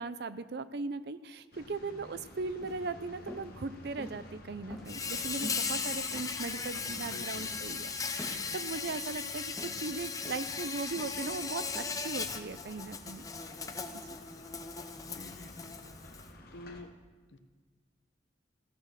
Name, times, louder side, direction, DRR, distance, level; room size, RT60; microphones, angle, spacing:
voice 1, 0.0-13.2, right 3 dB, 60° right, 13 dB, 0.5 m, -38 dB
sound 1, 1.5-16.8, left 1 dB, 55° left, 1.7 m, -52 dB
sound 2, 2.6-2.8 3.3-3.5 4.0-4.3 4.7-5.2 5.4-5.7 6.1-6.6 6.8-7.0 7.5-7.7 8.2-8.4 8.9-9.1 9.6-9.8 10.2-10.5 11.0-11.2 11.7-11.9, equal, ahead, 2.2 m, -46 dB
Insect, 4.9-16.3, left 5 dB, 20° left, 0.7 m, -38 dB
voice 2, 6.7-7.6 15.0-15.9 16.5-17.0 17.3-17.4, left 2 dB, 75° left, 8 dB, 1.0 m, -50 dB
15.5 x 8.9 x 6.6 m, 1.4 s
head